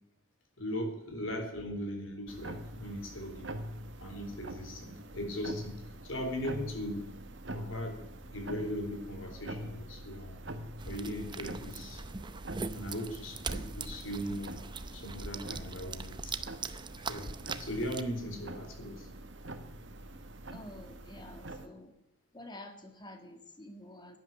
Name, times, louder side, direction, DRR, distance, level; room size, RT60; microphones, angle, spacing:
voice 1, 0.6-3.5 4.0-7.1 7.5-8.0 8.3-10.3 10.8-12.0 12.7-14.6 14.9-16.3 17.1-19.1, equal, 70° left, 4 dB, 3.8 m, -39 dB
sound 1, 2.3-21.7, right 1 dB, 55° right, 1.4 m, -45 dB
sound 2, 10.8-18.0, right 4 dB, 20° right, 0.6 m, -41 dB
voice 2, 20.5-21.9 22.3-24.2, left 1 dB, 20° left, 5 dB, 1.9 m, -49 dB
11.5 x 11.0 x 8.9 m, 0.88 s
head